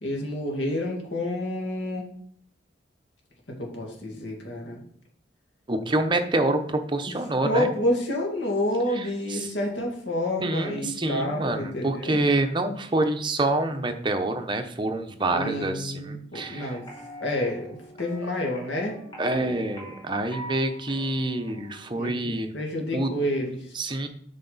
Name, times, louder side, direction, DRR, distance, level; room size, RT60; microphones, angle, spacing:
voice 1, 0.0-2.1 3.6-4.8 7.0-7.1 7.4-12.2 15.3-16.9 17.2-19.0 19.3-19.6 21.9-22.1 22.5-23.7, left 1 dB, 85° left, 0 dB, 2.3 m, -29 dB
voice 2, 5.7-7.7 8.9-9.5 10.4-16.8 19.2-22.5 22.9-23.1 23.7-24.1, right 2 dB, 25° right, 6 dB, 0.8 m, -27 dB
sound 1, 16.3-21.9, equal, 25° left, 2.4 m, -44 dB
8.2 x 5.7 x 4.1 m, 0.64 s
head